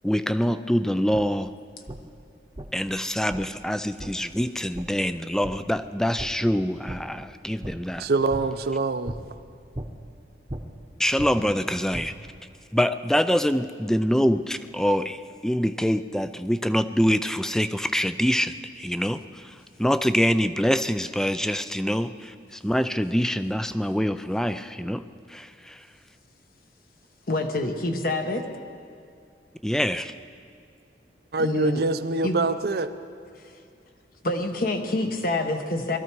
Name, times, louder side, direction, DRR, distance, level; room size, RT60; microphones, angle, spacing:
voice 1, 0.0-1.5 2.7-8.1 11.0-12.1 12.7-19.5 19.8-25.0 25.3-25.8 29.6-30.1, equal, 5° left, 12 dB, 0.3 m, -25 dB
sound 1, 1.1-1.2 1.9-2.0 2.5-2.7 3.3-3.4 4.0-4.1 4.7-4.8 5.4-5.5 6.2-6.3 6.9-7.0 7.6-7.7 8.3-8.4 9.0-9.2 9.7-9.9 10.5-10.6 11.2-12.1, right 1 dB, 25° right, 0.9 m, -35 dB
voice 2, 8.0-9.1 31.3-32.9, right 3 dB, 60° right, 10 dB, 0.6 m, -24 dB
voice 3, 27.3-28.5 31.4-31.8 32.2-32.4 34.2-36.0, left 2 dB, 55° left, 5 dB, 1.1 m, -26 dB
21.0 x 13.5 x 4.6 m, 2.3 s
head